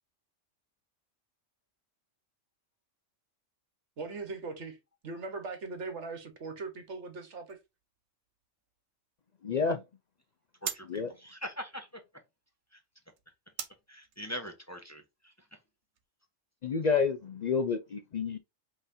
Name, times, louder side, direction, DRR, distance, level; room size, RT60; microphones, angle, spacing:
voice 1, 4.0-4.8 5.0-7.6, right 4 dB, 65° right, 1.4 m, -40 dB
sound 1, 7.5-16.1, right 8 dB, 80° right, 1.1 m, -47 dB
voice 2, 9.4-9.8 10.9-11.1 16.6-18.4, left 5 dB, 65° left, 0.4 m, -29 dB
voice 3, 10.6-11.9 12.7-12.8 13.9-15.3, equal, 15° left, 0.7 m, -42 dB
5.5 x 3.2 x 2.6 m
omnidirectional pair, 1.3 m